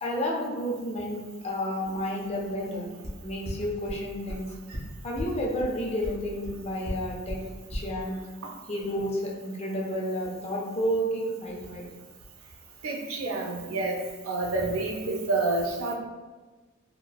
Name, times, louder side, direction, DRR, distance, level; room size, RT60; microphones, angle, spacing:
voice 1, 0.0-2.9 3.2-4.4 5.0-7.4 7.7-8.2 8.7-11.9, equal, 30° left, -2 dB, 0.5 m, -31 dB
sound 1, 3.0-3.1 3.4-3.5 3.8-3.9 4.3-4.4 4.7-4.8 5.2-5.3 5.6-5.7 6.0-6.1 6.4-6.5 6.8-6.9 7.3-7.4 7.7-7.8, equal, 15° right, 0.6 m, -33 dB
voice 2, 12.8-15.9, right 2 dB, 85° right, 0 dB, 0.5 m, -28 dB
4.0 x 2.0 x 2.3 m, 1.3 s
head